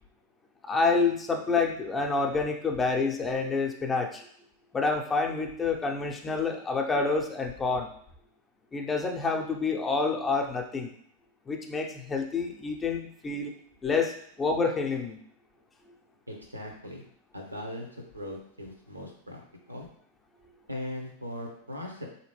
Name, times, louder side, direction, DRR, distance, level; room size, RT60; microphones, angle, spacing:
voice 1, 0.6-4.3 4.7-7.9 8.7-10.9 11.5-13.5 13.8-15.2, left 4 dB, 15° left, 2 dB, 0.5 m, -28 dB
voice 2, 16.3-17.0 17.3-17.9 18.1-19.4 19.7-19.9 20.7-22.1, left 1 dB, 85° right, 2 dB, 0.7 m, -39 dB
3.7 x 2.8 x 2.9 m, 0.65 s
figure-of-eight pair, 90°, 0 cm